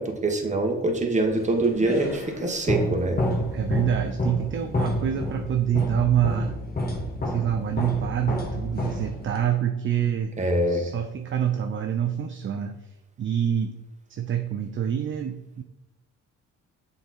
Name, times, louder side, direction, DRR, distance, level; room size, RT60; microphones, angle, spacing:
voice 1, 0.0-3.2 10.4-10.9, right 2 dB, 25° right, 2 dB, 1.2 m, -24 dB
sound 1, 1.4-9.5, left 1 dB, 30° left, 1.4 m, -29 dB
voice 2, 3.5-6.6 7.3-10.3 10.7-12.8 13.2-13.8 14.1-15.6, right 9 dB, 40° right, 5 dB, 0.6 m, -26 dB
7.0 x 3.9 x 4.2 m, 0.90 s
cardioid pair, 90°, 30 cm